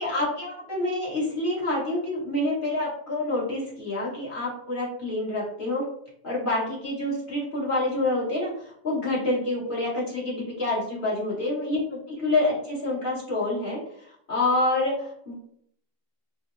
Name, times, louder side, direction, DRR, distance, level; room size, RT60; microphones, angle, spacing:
voice 1, 0.0-5.8 6.2-15.3, left 2 dB, 45° left, -7 dB, 1.7 m, -27 dB
4.3 x 2.1 x 2.3 m, 0.69 s
omnidirectional pair, 1.3 m